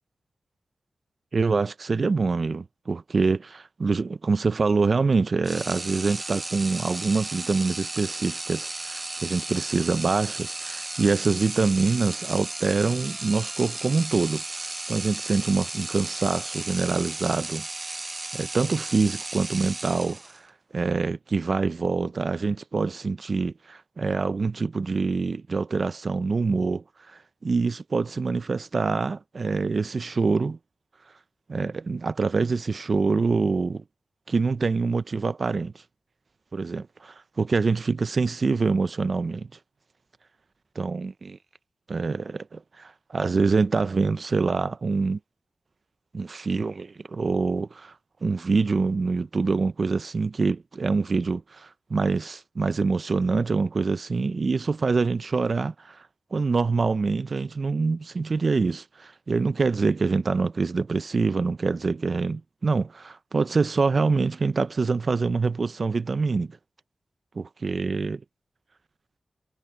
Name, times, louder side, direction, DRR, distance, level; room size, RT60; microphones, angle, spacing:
voice 1, 1.3-14.4 14.9-17.7 18.3-20.4 20.7-30.6 31.5-33.8 34.3-35.7 36.5-39.5 40.8-41.4 41.9-45.2 46.1-47.9 48.2-56.0 56.3-66.6 67.4-68.2, right 4 dB, 55° right, 0.6 m, -25 dB
sound 1, 5.4-20.5, right 2 dB, 30° right, 0.9 m, -35 dB
wide cardioid pair, 90°, 0 cm